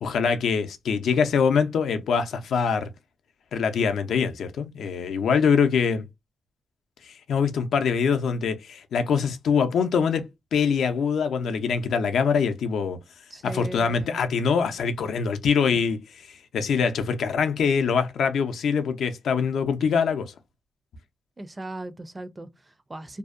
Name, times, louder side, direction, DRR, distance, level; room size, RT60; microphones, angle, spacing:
voice 1, 0.0-2.9 3.5-6.1 7.0-13.0 13.4-20.4, left 6 dB, 80° left, 0.4 m, -24 dB
voice 2, 13.3-14.2 21.4-23.2, right 2 dB, 25° right, 0.4 m, -38 dB
2.6 x 2.1 x 2.4 m
cardioid pair, 95°, 0 cm